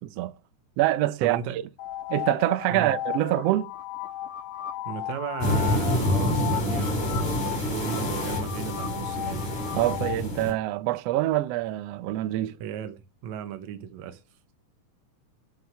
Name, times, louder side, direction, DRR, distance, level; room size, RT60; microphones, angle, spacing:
voice 1, 0.0-0.3 0.8-1.4 2.1-3.7 9.8-12.6, right 15 dB, 85° right, 1.4 m, -25 dB
voice 2, 1.2-1.6 2.7-2.9 4.9-9.5 12.6-14.2, right 8 dB, 70° right, 2.1 m, -36 dB
sound 1, 1.8-10.2, left 13 dB, 75° left, 2.2 m, -35 dB
sound 2, 5.4-10.5, left 1 dB, 60° left, 4.9 m, -27 dB
9.7 x 7.1 x 6.2 m
omnidirectional pair, 3.7 m